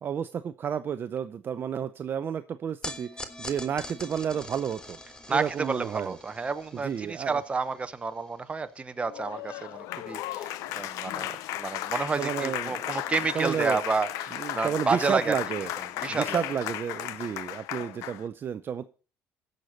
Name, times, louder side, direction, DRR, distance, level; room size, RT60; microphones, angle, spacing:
voice 1, 0.0-3.1 3.4-5.0 5.3-6.2 6.8-7.4 12.2-13.0 13.3-13.8 14.4-15.7 16.1-18.8, right 8 dB, 40° right, 11 dB, 0.6 m, -31 dB
sound 1, 2.8-9.2, left 1 dB, 15° left, 1.4 m, -44 dB
voice 2, 5.3-15.4 15.8-16.4, right 4 dB, 20° right, 11 dB, 1.0 m, -30 dB
Applause, 9.1-18.3, left 14 dB, 75° left, 0.7 m, -35 dB
15.5 x 6.6 x 4.1 m, 0.37 s
cardioid pair, 100°, 6 cm